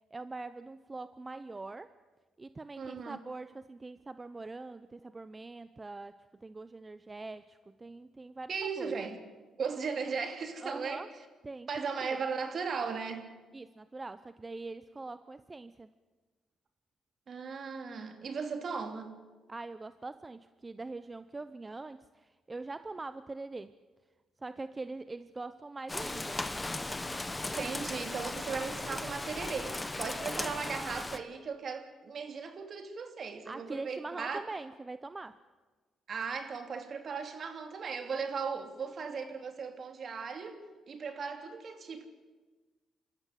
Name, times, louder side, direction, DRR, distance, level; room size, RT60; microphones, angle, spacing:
voice 1, 0.0-1.9 2.4-8.9 10.6-11.1 11.4-12.2 13.5-15.9 19.5-23.7 24.4-26.4 33.5-35.4, right 3 dB, 25° right, 0.7 m, -43 dB
voice 2, 2.8-3.2 8.5-9.2 9.6-11.1 11.7-13.3 17.3-19.1 27.5-34.4 36.1-42.1, right 5 dB, 50° right, 2.9 m, -37 dB
Rain, 25.9-31.2, left 2 dB, 15° left, 1.3 m, -37 dB
26.5 x 14.0 x 9.3 m
cardioid pair, 80°, 0 cm